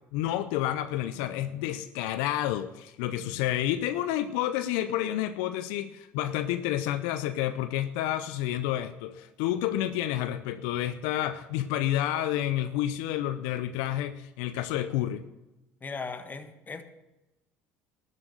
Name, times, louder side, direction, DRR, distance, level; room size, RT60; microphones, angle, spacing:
voice 1, 0.1-15.3, left 12 dB, 80° left, 11 dB, 0.6 m, -29 dB
voice 2, 15.8-16.8, left 4 dB, 25° left, 8 dB, 1.5 m, -38 dB
12.5 x 7.5 x 6.7 m, 1.0 s
supercardioid pair, 85°, 7 cm